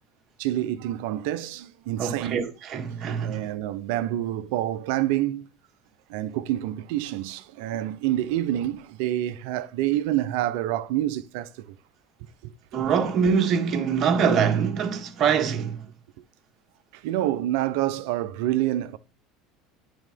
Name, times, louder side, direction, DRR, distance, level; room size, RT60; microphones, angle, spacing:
voice 1, 0.4-2.5 3.2-5.5 6.1-11.7 12.4-12.5 16.9-19.0, right 13 dB, 75° right, 0.7 m, -27 dB
voice 2, 2.0-3.5 12.7-15.8, right 6 dB, 45° right, 1.5 m, -24 dB
9.0 x 3.8 x 5.2 m
supercardioid pair, 90°, 0 cm